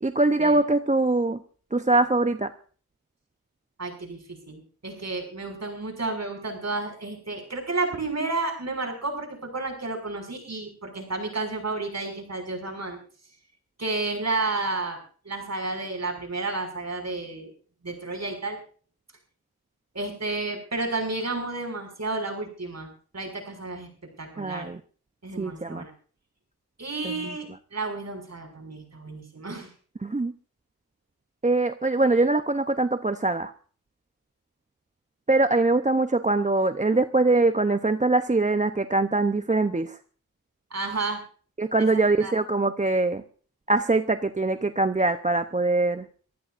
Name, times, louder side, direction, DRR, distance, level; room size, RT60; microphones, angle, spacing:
voice 1, 0.0-1.4 1.7-2.5 24.4-24.8 25.4-25.9 27.0-27.3 30.0-30.3 31.4-33.5 35.3-40.0 41.6-43.2 43.7-46.1, right 2 dB, 20° right, 9 dB, 0.8 m, -23 dB
voice 2, 3.8-13.0 13.8-15.0 15.2-17.5 17.8-18.6 19.9-22.9 23.1-23.9 24.2-24.7 25.2-25.9 26.8-27.4 27.7-29.7 40.7-41.2 41.8-42.3, right 3 dB, 45° right, 3 dB, 6.2 m, -31 dB
26.0 x 15.0 x 2.6 m, 0.42 s
cardioid pair, 55°, 37 cm